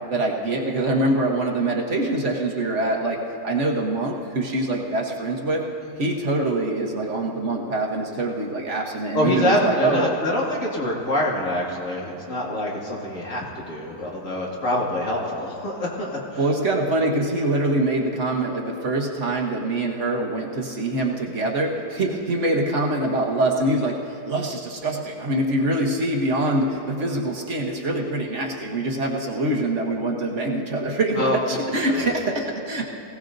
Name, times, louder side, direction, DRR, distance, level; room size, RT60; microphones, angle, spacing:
voice 1, 0.1-5.6 6.0-10.0 16.4-32.8, right 2 dB, 50° right, 0 dB, 1.4 m, -24 dB
voice 2, 9.1-16.2 31.2-31.4 31.8-32.1, left 1 dB, 55° left, -3 dB, 2.4 m, -25 dB
20.0 x 17.0 x 2.6 m, 2.8 s
omnidirectional pair, 1.6 m